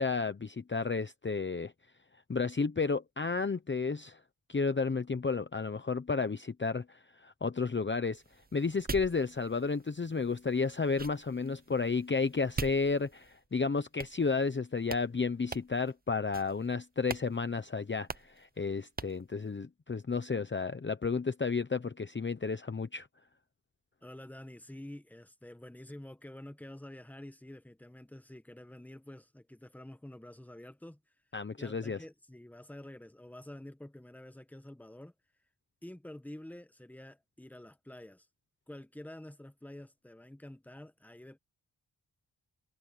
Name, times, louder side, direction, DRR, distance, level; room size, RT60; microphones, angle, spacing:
voice 1, 0.0-1.7 2.3-4.2 4.5-23.1 31.3-32.0, left 4 dB, 25° left, 0.8 m, -32 dB
sound 1, 8.1-13.5 14.0-14.6 14.8-15.1 15.5-15.9 16.3-16.7 17.1-17.3 17.5-17.6 18.1-18.4 19.0-19.2, right 4 dB, 20° right, 0.7 m, -43 dB
voice 2, 24.0-31.0 31.6-35.1 35.8-38.3 38.7-41.4, left 1 dB, 5° left, 1.2 m, -48 dB
wide cardioid pair, 115°, 44 cm